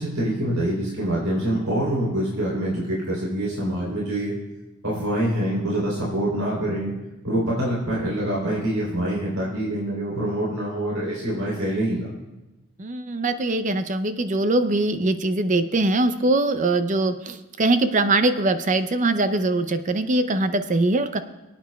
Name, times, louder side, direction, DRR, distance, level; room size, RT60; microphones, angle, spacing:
voice 1, 0.0-4.3 4.8-6.9 7.2-12.1, right 1 dB, 70° right, -5 dB, 3.4 m, -25 dB
voice 2, 12.8-21.2, right 2 dB, 35° right, 10 dB, 0.5 m, -22 dB
27.0 x 9.0 x 2.3 m, 1.0 s
head